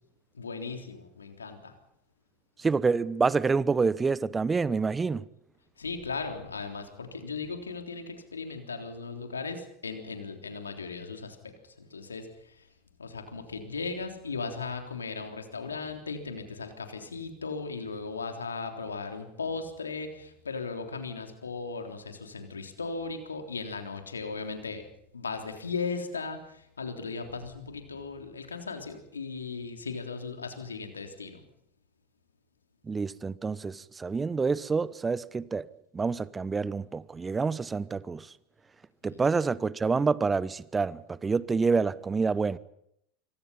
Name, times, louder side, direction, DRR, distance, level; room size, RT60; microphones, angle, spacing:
voice 1, 0.3-1.7 5.8-12.7 13.0-24.8 25.1-31.4 39.1-39.2, left 4 dB, 90° left, 3.5 m, -37 dB
voice 2, 2.6-5.2 32.9-35.7 35.9-38.3 39.0-42.6, right 4 dB, 20° right, 1.0 m, -27 dB
26.5 x 24.0 x 5.7 m
hypercardioid pair, 85°, 0 cm